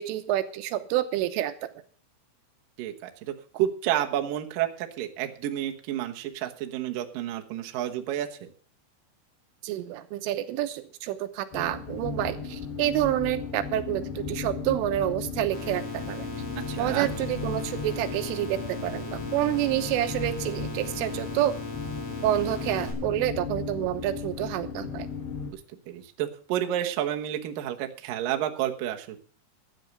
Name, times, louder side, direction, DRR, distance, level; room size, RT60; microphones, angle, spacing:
voice 1, 0.0-1.7 9.6-16.3 16.8-21.6 22.2-25.1, right 13 dB, 90° right, 9 dB, 3.5 m, -28 dB
voice 2, 2.8-8.5 16.7-17.1 25.5-25.6 25.9-29.2, right 11 dB, 65° right, 4 dB, 2.3 m, -30 dB
sound 1, 11.5-25.5, left 5 dB, 65° left, 4.0 m, -36 dB
sound 2, 15.5-22.9, left 1 dB, 45° left, 4.7 m, -38 dB
12.5 x 9.5 x 6.7 m, 0.43 s
omnidirectional pair, 5.6 m